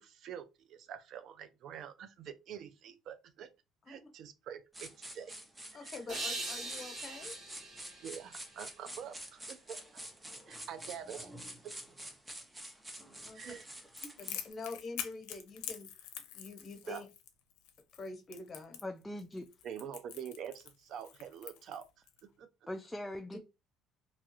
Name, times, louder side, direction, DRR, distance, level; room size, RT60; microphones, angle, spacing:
voice 1, 0.0-3.5 3.9-5.3 5.7-5.9 8.0-10.0 10.5-11.3 11.6-11.7 13.3-13.6 16.8-17.0 19.6-21.9 22.2-22.5, right 8 dB, 65° right, 0.4 m, -46 dB
sound 1, 4.7-14.5, right 1 dB, 15° right, 0.7 m, -48 dB
voice 2, 5.7-7.3 13.2-13.4 14.2-15.9 16.3-17.1 17.9-18.8, left 3 dB, 35° left, 1.0 m, -45 dB
sound 2, 6.1-9.2, right 2 dB, 45° right, 1.5 m, -42 dB
Crackle, 14.0-22.2, left 11 dB, 90° left, 0.4 m, -45 dB
voice 3, 18.8-19.5 22.7-23.4, left 1 dB, 10° left, 0.3 m, -41 dB
2.9 x 2.3 x 3.0 m
supercardioid pair, 90°, 0 cm